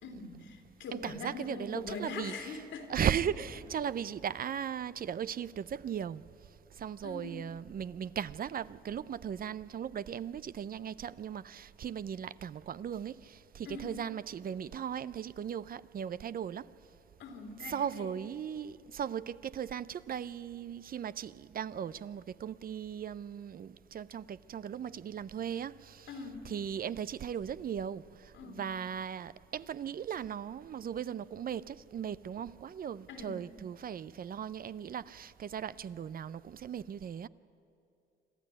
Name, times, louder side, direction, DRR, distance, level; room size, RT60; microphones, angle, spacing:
voice 1, 0.0-3.0 7.0-7.5 13.6-13.9 17.2-18.1 26.1-26.4 28.3-28.6 33.1-33.4, left 3 dB, 80° left, 3.2 m, -42 dB
voice 2, 0.9-2.6 2.9-6.2 6.8-16.7 17.6-26.2 26.4-37.3, right 8 dB, 45° right, 0.6 m, -37 dB
25.5 x 13.5 x 9.9 m
cardioid pair, 90°, 20 cm